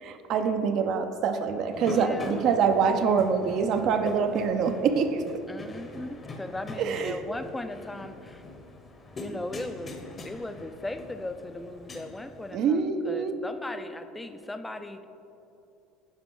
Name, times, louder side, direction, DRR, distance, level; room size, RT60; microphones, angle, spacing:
voice 1, 0.0-5.4 6.8-7.2 12.5-13.3, right 6 dB, 55° right, 8 dB, 0.5 m, -25 dB
sound 1, 1.7-12.6, left 2 dB, 25° left, 0.8 m, -42 dB
voice 2, 1.7-2.4 5.5-8.4 9.1-10.0 10.2-15.1, left 2 dB, 10° left, 9 dB, 0.4 m, -37 dB
9.6 x 4.9 x 3.8 m, 2.7 s
supercardioid pair, 110°, 0 cm